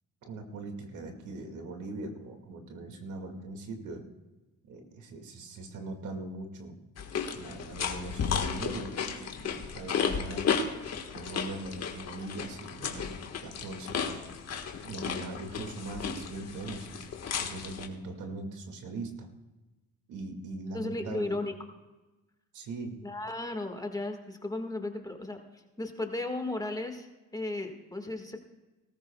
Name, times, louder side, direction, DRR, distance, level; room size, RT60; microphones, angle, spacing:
voice 1, 0.2-4.0 4.7-6.8 7.3-10.7 11.1-14.2 14.8-17.1 17.4-19.3 20.1-21.4 22.5-23.0, right 2 dB, 80° right, 4 dB, 2.2 m, -40 dB
sound 1, 7.0-17.9, left 6 dB, 55° left, 1.6 m, -34 dB
voice 2, 20.7-21.5 23.0-27.1 27.3-28.4, left 2 dB, 10° left, 4 dB, 1.7 m, -35 dB
20.0 x 13.5 x 2.3 m, 1.1 s
cardioid pair, 90°, 30 cm